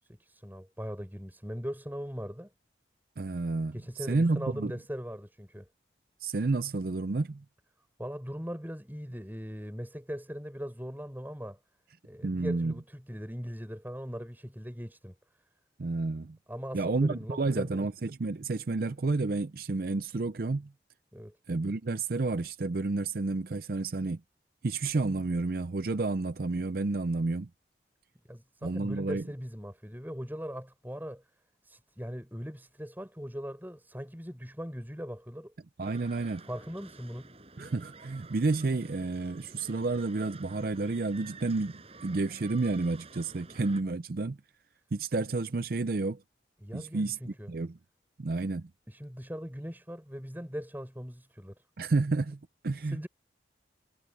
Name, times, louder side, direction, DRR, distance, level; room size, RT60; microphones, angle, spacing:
voice 1, 0.0-2.5 3.7-5.7 8.0-11.6 12.0-15.1 16.5-17.8 21.1-21.4 28.3-31.2 31.6-35.5 36.5-37.3 46.6-47.5 48.9-51.6 52.8-53.1, equal, 10° right, 6.7 m, -40 dB
voice 2, 3.2-4.7 6.2-7.4 12.2-12.7 15.8-16.4 16.7-20.7 21.5-24.2 24.6-27.5 28.6-29.2 35.8-36.4 37.6-44.4 44.9-46.2 46.7-47.8 48.2-48.7 51.8-52.4 52.6-53.1, right 3 dB, 55° right, 0.5 m, -30 dB
sound 1, 35.8-43.8, right 3 dB, 35° right, 5.7 m, -51 dB
head